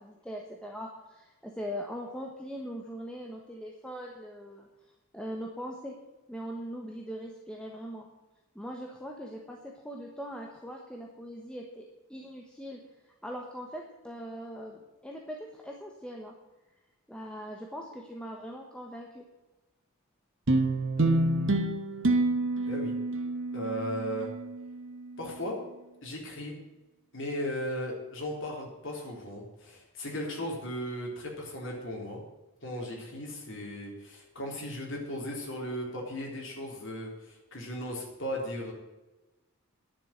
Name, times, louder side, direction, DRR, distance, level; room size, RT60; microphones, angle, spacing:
voice 1, 0.0-4.7 5.1-6.0 6.3-8.1 8.5-11.8 12.1-16.3 17.1-19.2, equal, 5° left, 0 dB, 1.1 m, -41 dB
sound 1, 20.5-25.1, right 2 dB, 60° right, 1.2 m, -28 dB
voice 2, 21.0-21.5 22.7-22.9 23.5-24.3 25.2-25.6 26.0-26.6 27.1-32.2 32.6-38.7, equal, 60° left, -1 dB, 3.8 m, -36 dB
10.5 x 7.4 x 9.4 m, 1.1 s
head